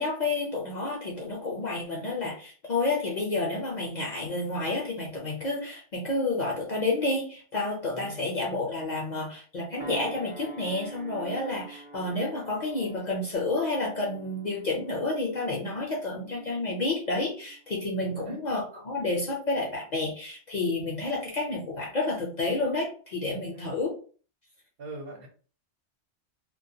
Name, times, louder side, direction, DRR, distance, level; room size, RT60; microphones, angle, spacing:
voice 1, 0.0-23.9, left 2 dB, 50° left, -2 dB, 0.6 m, -30 dB
voice 2, 7.9-8.2 18.0-18.4 23.5-23.8 24.8-25.3, right 2 dB, 60° right, 2 dB, 0.8 m, -42 dB
sound 1, 9.8-18.6 19.1-19.3, right 4 dB, 35° right, 0.4 m, -46 dB
2.2 x 2.1 x 2.6 m, 0.41 s
omnidirectional pair, 1.2 m